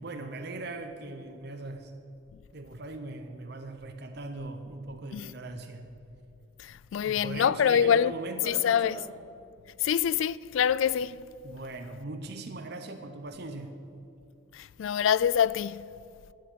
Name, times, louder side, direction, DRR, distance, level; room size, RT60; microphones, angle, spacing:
voice 1, 0.0-1.9 2.5-5.9 7.0-9.1 11.4-13.7, right 2 dB, 55° right, 0.8 m, -40 dB
voice 2, 6.6-8.1 8.5-8.9 9.8-11.2 14.5-15.9, left 8 dB, 75° left, 0.3 m, -25 dB
10.5 x 9.3 x 8.6 m
head